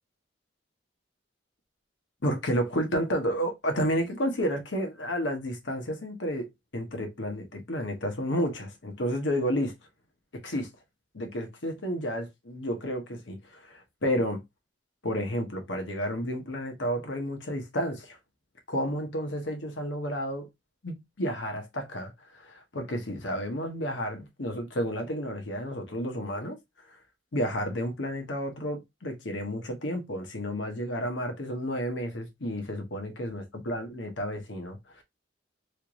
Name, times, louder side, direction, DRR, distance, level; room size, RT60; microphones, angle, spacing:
voice 1, 2.2-6.5 6.7-9.7 10.4-10.7 11.1-14.4 15.0-18.2 18.7-20.5 20.8-26.6 26.9-27.0 27.3-35.0, equal, 75° left, 1.0 m, -31 dB
3.2 x 2.5 x 3.0 m
head